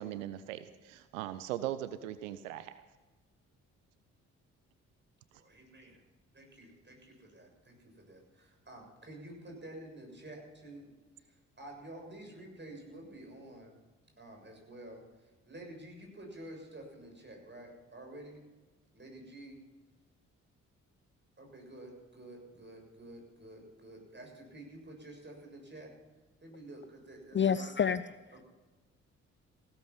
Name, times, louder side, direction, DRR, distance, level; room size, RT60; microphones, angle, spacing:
voice 1, 0.0-2.8, right 12 dB, 85° right, 13 dB, 0.6 m, -39 dB
voice 2, 5.3-6.0 6.3-10.9 11.2-13.8 14.2-18.5 18.9-19.6 21.4-25.9 26.4-27.8 28.3-28.4, right 1 dB, 30° right, 2 dB, 7.0 m, -50 dB
voice 3, 27.3-28.1, left 7 dB, 30° left, 16 dB, 0.6 m, -28 dB
16.5 x 13.5 x 5.6 m, 1.3 s
hypercardioid pair, 40°, 37 cm